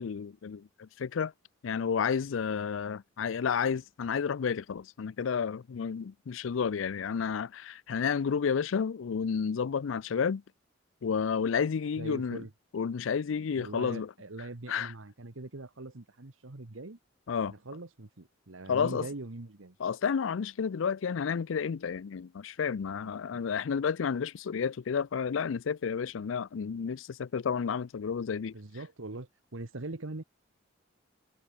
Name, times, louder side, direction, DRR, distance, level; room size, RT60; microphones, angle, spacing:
voice 1, 0.0-1.3 1.6-10.4 11.0-12.4 12.7-14.1 14.7-14.9 17.3-17.5 18.7-19.1 19.8-28.5, left 6 dB, 70° left, 0.4 m, -31 dB
voice 2, 12.0-12.5 13.5-17.0 17.5-19.8 23.3-23.4 28.5-30.2, right 2 dB, 85° right, 1.4 m, -42 dB
head